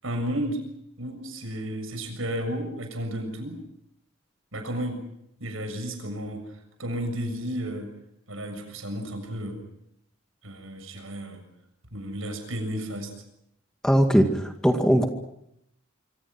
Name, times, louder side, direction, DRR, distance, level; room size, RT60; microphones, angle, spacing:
voice 1, 0.0-0.6 1.0-3.6 4.5-5.1 5.4-6.5 6.8-7.9 8.3-9.6 10.4-11.4 11.9-13.1 14.2-14.3, equal, 80° right, 6 dB, 7.1 m, -32 dB
voice 2, 13.8-15.1, equal, 5° left, 4 dB, 2.1 m, -20 dB
26.5 x 25.5 x 6.0 m, 0.77 s
head